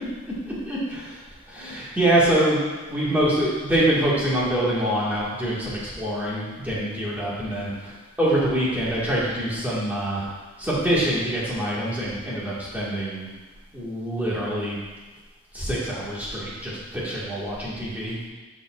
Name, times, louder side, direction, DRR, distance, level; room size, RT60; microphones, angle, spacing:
voice 1, 0.5-1.2 1.5-2.6 2.9-10.3 10.6-13.3 13.7-14.8 15.5-18.2, right 1 dB, 10° right, -8 dB, 1.8 m, -25 dB
13.5 x 5.0 x 2.4 m, 1.3 s
head